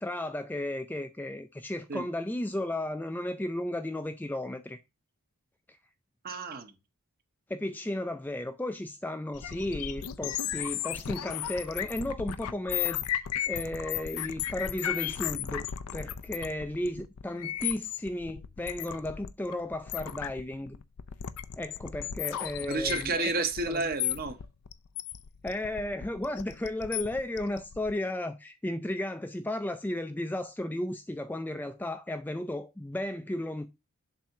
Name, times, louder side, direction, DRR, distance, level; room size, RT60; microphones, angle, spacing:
voice 1, 0.0-4.8 7.5-13.0 13.5-15.7 15.9-20.8 21.6-23.1 23.7-23.9 25.4-33.7, left 1 dB, 10° left, 0.4 m, -34 dB
voice 2, 6.2-6.7 22.7-24.4, right 3 dB, 40° right, 0.9 m, -31 dB
sound 1, 9.3-27.9, left 11 dB, 75° left, 0.5 m, -35 dB
7.4 x 2.7 x 5.7 m
head